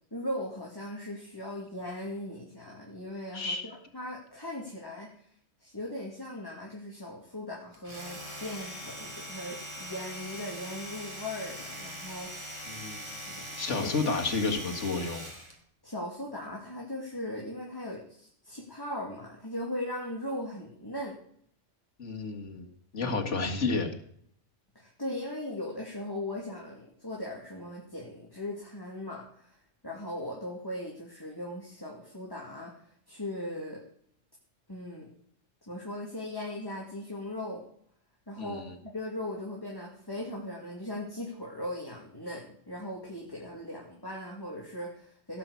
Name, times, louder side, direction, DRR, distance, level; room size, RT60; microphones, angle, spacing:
voice 1, 0.1-5.1 5.6-12.6 13.3-14.1 15.8-21.2 23.0-23.2 24.7-29.6 29.8-33.8 34.7-35.1 35.7-37.6 38.3-38.6 38.9-45.4, left 1 dB, 15° left, -3 dB, 2.5 m, -39 dB
Domestic sounds home sounds, 7.7-15.6, equal, 20° right, 3.3 m, -42 dB
voice 2, 12.7-13.1 13.6-15.3 22.0-23.9 38.4-38.7, left 3 dB, 70° left, 3 dB, 2.3 m, -31 dB
16.5 x 6.1 x 8.4 m, 0.64 s
omnidirectional pair, 1.3 m